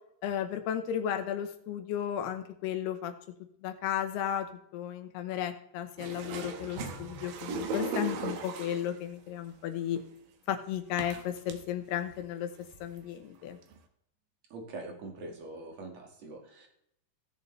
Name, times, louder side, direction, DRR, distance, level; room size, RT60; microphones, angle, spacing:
voice 1, 0.2-3.1 3.6-10.0 10.5-12.5 12.8-13.6, left 10 dB, 80° left, 7 dB, 3.1 m, -34 dB
sound 1, 6.0-9.0 10.0-10.1 11.0-11.6 12.1-12.2 12.6-13.0 13.7-13.8, right 3 dB, 70° right, 2.5 m, -37 dB
voice 2, 14.5-16.7, right 2 dB, 50° right, 2 dB, 2.8 m, -43 dB
17.5 x 6.9 x 3.3 m, 0.72 s
omnidirectional pair, 4.7 m